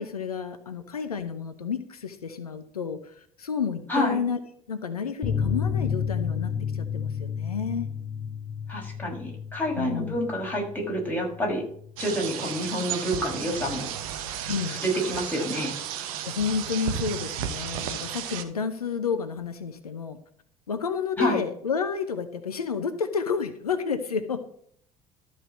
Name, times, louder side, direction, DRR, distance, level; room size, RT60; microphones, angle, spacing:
voice 1, 0.0-4.4 4.7-7.9 9.7-10.2 14.5-14.8 16.2-20.2 20.7-24.4, left 6 dB, 85° left, 9 dB, 0.8 m, -30 dB
sound 1, 5.2-12.3 12.6-12.7 13.0-13.1, left 7 dB, 25° left, 1.0 m, -32 dB
voice 2, 8.7-11.6 12.0-13.9 14.7-15.7 21.2-21.4, equal, 10° left, -2 dB, 5.9 m, -28 dB
sound 2, 12.0-18.4, right 9 dB, 70° right, 1.1 m, -33 dB
13.0 x 4.9 x 7.3 m, 0.63 s
figure-of-eight pair, 60°, 19 cm